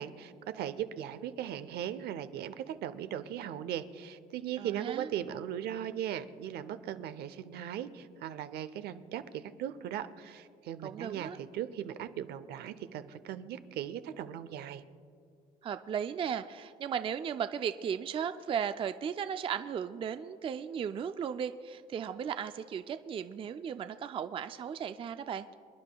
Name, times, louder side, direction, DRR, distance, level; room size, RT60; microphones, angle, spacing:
voice 1, 0.0-14.8, right 10 dB, 70° right, 12 dB, 0.7 m, -38 dB
voice 2, 4.6-5.1 10.8-11.4 15.6-25.5, right 8 dB, 30° right, 10 dB, 0.3 m, -36 dB
28.0 x 10.5 x 2.3 m, 2.4 s
cardioid pair, 110°, 17 cm